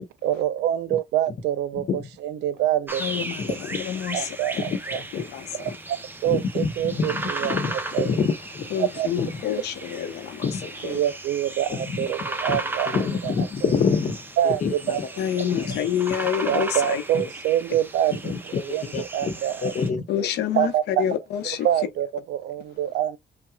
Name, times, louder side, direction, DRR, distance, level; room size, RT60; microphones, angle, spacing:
voice 1, 0.2-3.2 4.1-4.6 4.9-5.0 5.6-6.0 6.2-8.2 8.8-9.1 10.8-12.9 13.2-13.3 14.4-15.0 15.4-15.5 16.5-18.3 18.6-19.7 20.5-21.0 21.6-23.2, right 11 dB, 85° right, 0.7 m, -25 dB
voice 2, 1.7-2.1 3.4-3.8 4.6-4.8 5.1-5.2 6.2-8.6 9.2-9.3 10.4-10.7 11.7-12.6 12.9-14.2 14.4-15.1 15.5-15.8 17.1-17.3 18.2-18.6 18.9-19.3 19.6-20.3, left 5 dB, 50° left, 1.0 m, -27 dB
sound 1, 2.9-19.9, right 2 dB, 10° right, 0.8 m, -36 dB
voice 3, 3.0-4.4 5.3-5.8 8.7-10.4 10.8-11.0 15.2-17.0 20.1-21.7, left 9 dB, 80° left, 0.9 m, -28 dB
5.8 x 2.3 x 2.3 m
cardioid pair, 115°, 17 cm